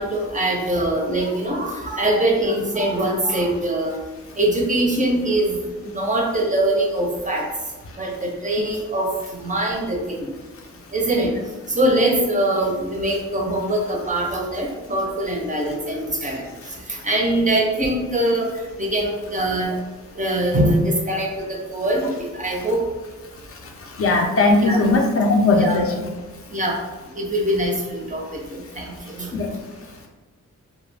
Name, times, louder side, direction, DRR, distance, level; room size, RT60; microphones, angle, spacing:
voice 1, 0.0-3.9 4.4-5.6 5.8-7.4 8.0-10.3 10.9-11.3 11.7-16.4 16.9-18.5 18.8-19.8 20.2-22.8 24.6-24.8 25.5-25.8 26.5-26.8 27.2-29.3, right 1 dB, 25° right, -1 dB, 0.4 m, -22 dB
voice 2, 24.0-25.8 29.3-29.5, left 2 dB, 50° left, 1 dB, 0.4 m, -18 dB
2.3 x 2.0 x 3.2 m, 1.2 s
wide cardioid pair, 110°, 30 cm